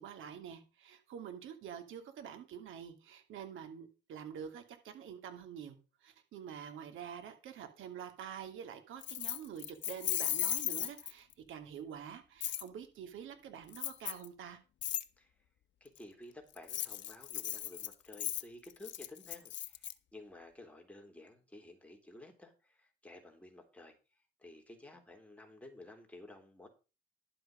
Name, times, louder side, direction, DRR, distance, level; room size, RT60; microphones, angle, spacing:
voice 1, 0.0-14.6, right 8 dB, 80° right, 2.6 m, -47 dB
Keys jangling, 9.0-11.3 12.4-12.6 13.7-14.3 14.8-15.0 16.5-19.9, left 12 dB, 65° left, 0.9 m, -36 dB
voice 2, 15.8-23.9 24.4-26.7, left 2 dB, 5° left, 3.7 m, -53 dB
11.5 x 7.7 x 5.1 m
cardioid pair, 90°, 20 cm